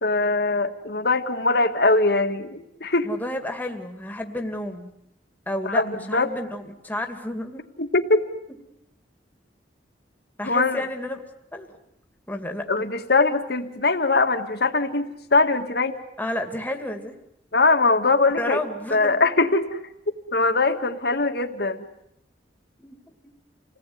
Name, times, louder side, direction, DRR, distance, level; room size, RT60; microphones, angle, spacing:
voice 1, 0.0-3.1 5.7-6.3 7.8-8.2 10.4-10.8 12.7-15.9 17.5-18.6 18.9-19.8 20.3-21.8, left 3 dB, 60° left, 7 dB, 2.0 m, -21 dB
voice 2, 3.0-4.9 5.5-7.6 10.4-11.2 11.5-11.8 12.3-12.6 16.2-17.1 18.4-19.2 22.8-23.0, left 1 dB, 10° left, 4 dB, 2.5 m, -31 dB
28.5 x 19.0 x 9.6 m, 0.80 s
head